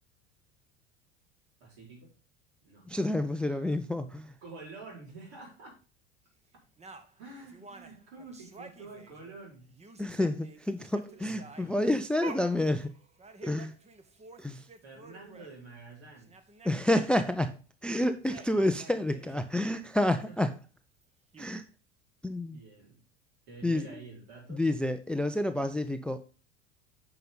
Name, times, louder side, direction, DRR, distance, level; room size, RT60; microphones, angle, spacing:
voice 1, 1.6-2.1 2.6-2.9 3.5-3.7 4.4-5.8 7.2-9.7 11.1-12.0 14.8-16.4 18.5-19.5 20.2-20.4 22.4-23.0 23.5-24.6, right 3 dB, 65° right, -2 dB, 4.6 m, -49 dB
voice 2, 2.9-4.3 10.0-12.9 13.4-13.7 14.4-14.7 16.6-17.5 17.8-20.5 21.4-21.6 22.2-22.6 23.6-23.9 24.5-26.2, left 1 dB, 5° left, 11 dB, 0.5 m, -29 dB
sound 1, 6.8-9.4 9.7-15.5 15.9-16.0 16.2-17.1 17.8-18.7 19.1-19.5 21.0-21.1 21.3-21.5, right 4 dB, 20° right, 1.1 m, -50 dB
9.3 x 5.6 x 3.7 m, 0.36 s
figure-of-eight pair, 75°, 34 cm